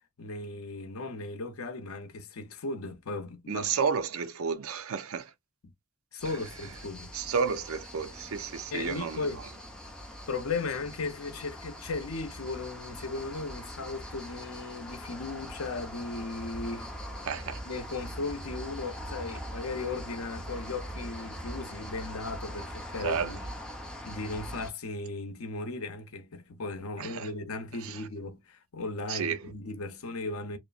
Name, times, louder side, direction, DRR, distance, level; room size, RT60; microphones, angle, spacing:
voice 1, 0.2-3.7 6.1-7.1 8.7-9.4 10.3-16.9 17.7-23.4 24.0-30.6, left 3 dB, 85° left, 0.6 m, -36 dB
voice 2, 3.5-5.3 7.1-9.3 17.2-17.6 23.0-23.3 27.0-27.3 27.8-28.1 29.1-29.5, right 6 dB, 80° right, 0.5 m, -31 dB
sound 1, 6.2-24.7, equal, 5° left, 0.6 m, -42 dB
3.0 x 2.1 x 2.3 m
head